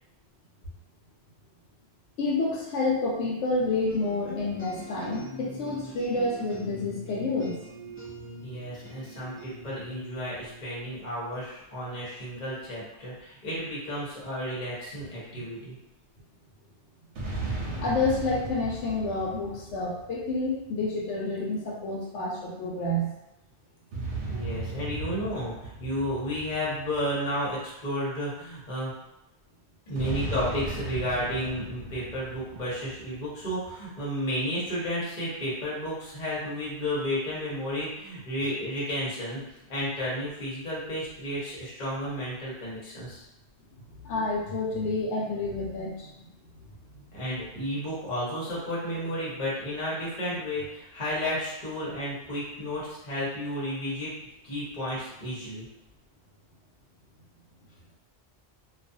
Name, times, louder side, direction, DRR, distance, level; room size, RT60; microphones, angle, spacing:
voice 1, 2.2-7.6 15.3-15.4 17.8-23.1 44.1-46.3 46.9-47.0, left 2 dB, 90° left, -3 dB, 0.9 m, -29 dB
sound 1, 3.9-11.4, equal, 15° left, 0.4 m, -44 dB
voice 2, 8.4-15.7 24.3-28.9 29.9-39.4 39.7-43.2 47.1-54.1 54.4-55.6, equal, 40° left, -7 dB, 1.0 m, -32 dB
sound 2, 17.2-20.8 23.9-27.6 30.0-33.4, right 2 dB, 80° right, 0.9 m, -36 dB
2.4 x 2.3 x 2.6 m, 0.91 s
omnidirectional pair, 1.2 m